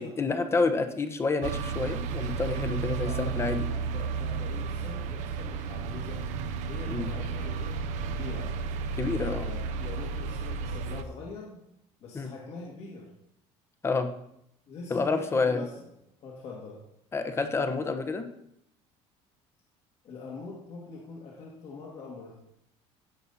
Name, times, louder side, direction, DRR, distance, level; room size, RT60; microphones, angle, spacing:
voice 1, 0.0-3.6 6.9-7.1 9.0-9.5 12.1-12.3 13.8-14.1 14.9-15.6 17.1-18.3, left 4 dB, 20° left, 8 dB, 1.0 m, -28 dB
sound 1, 1.4-11.0, right 5 dB, 65° right, 0.9 m, -33 dB
voice 2, 3.0-6.3 6.6-8.5 9.4-11.6 12.0-13.1 14.7-15.9 16.2-16.8 20.0-22.4, left 4 dB, 55° left, -3 dB, 2.3 m, -43 dB
16.0 x 5.4 x 4.2 m, 0.75 s
cardioid pair, 135°, 13 cm